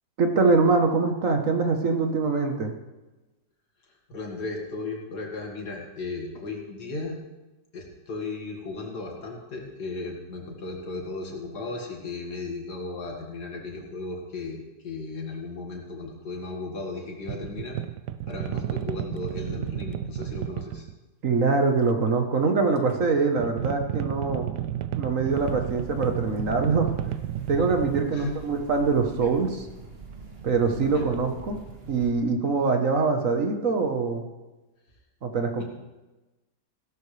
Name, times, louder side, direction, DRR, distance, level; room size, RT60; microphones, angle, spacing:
voice 1, 0.2-2.7 21.2-24.5 25.0-26.9 27.5-29.6 30.4-31.6 31.9-34.2 35.2-35.6, right 4 dB, 50° right, 5 dB, 1.5 m, -23 dB
voice 2, 4.1-7.2 7.7-17.8 18.3-20.9 28.1-28.3 29.2-29.3 30.9-31.1 35.6-35.7, left 3 dB, 70° left, 0 dB, 2.7 m, -35 dB
sound 1, 17.3-20.9 23.4-28.1 29.1-29.3 30.4-31.6, right 11 dB, 80° right, 1.2 m, -32 dB
sound 2, 25.3-32.1, right 3 dB, 35° right, 1.8 m, -44 dB
16.5 x 12.5 x 3.3 m, 1.1 s
omnidirectional pair, 1.8 m